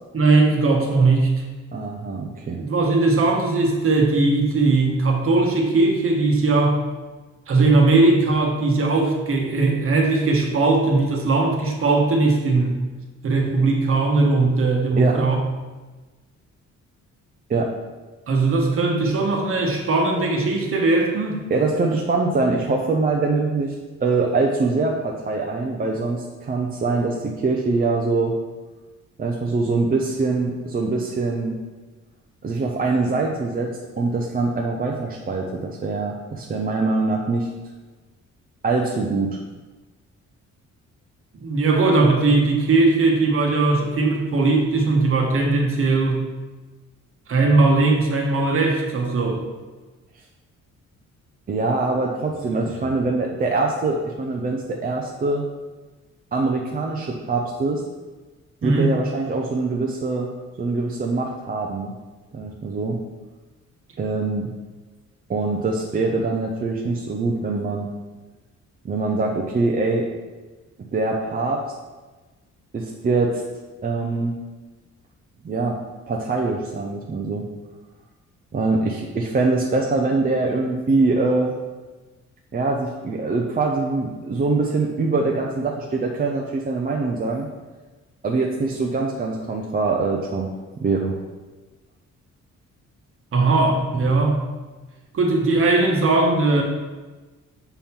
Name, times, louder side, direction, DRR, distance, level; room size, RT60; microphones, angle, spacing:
voice 1, 0.1-1.3 2.6-6.8 7.5-12.8 13.2-15.4 18.3-21.4 41.4-46.2 47.3-49.4 52.3-52.6 58.6-58.9 93.3-94.4 95.1-96.6, right 3 dB, 45° right, 1 dB, 1.1 m, -19 dB
voice 2, 1.7-2.6 15.0-15.2 17.5-17.7 21.5-23.7 24.0-28.3 29.2-31.6 32.4-37.5 38.6-39.4 51.5-55.4 56.3-57.8 58.6-60.3 60.6-61.9 62.3-63.0 64.0-64.5 65.3-67.9 68.8-70.1 70.9-71.6 72.7-73.4 73.8-74.4 75.4-75.8 76.1-77.4 78.5-81.5 82.5-87.5 88.2-90.5 90.8-91.1, right 3 dB, 30° right, 0 dB, 0.5 m, -23 dB
6.9 x 3.6 x 4.4 m, 1.3 s
cardioid pair, 140°, 30 cm